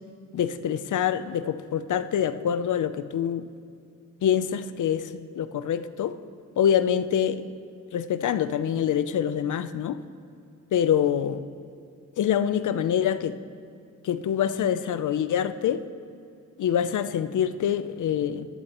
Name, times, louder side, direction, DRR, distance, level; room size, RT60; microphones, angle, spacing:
voice 1, 0.3-3.4 4.2-6.1 6.6-7.4 7.9-10.0 10.7-11.4 12.2-13.3 14.0-15.8 16.6-18.5, left 9 dB, 65° left, 12 dB, 0.6 m, -25 dB
16.5 x 12.0 x 3.0 m, 2.5 s
wide cardioid pair, 120°, 32 cm